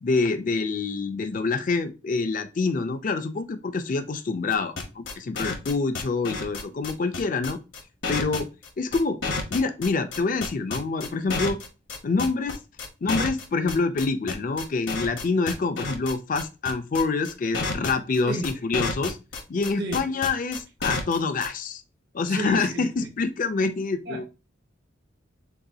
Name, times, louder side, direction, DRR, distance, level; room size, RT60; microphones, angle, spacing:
voice 1, 0.0-7.6 8.1-8.5 8.8-9.2 9.5-11.6 12.0-12.6 13.0-19.2 19.5-21.8 22.1-24.3, left 4 dB, 45° left, 0.4 m, -26 dB
sound 1, 4.5-21.5, left 3 dB, 75° left, 0.9 m, -30 dB
voice 2, 22.3-22.9 24.1-24.3, right 2 dB, 55° right, 0.9 m, -31 dB
6.7 x 2.3 x 2.6 m
head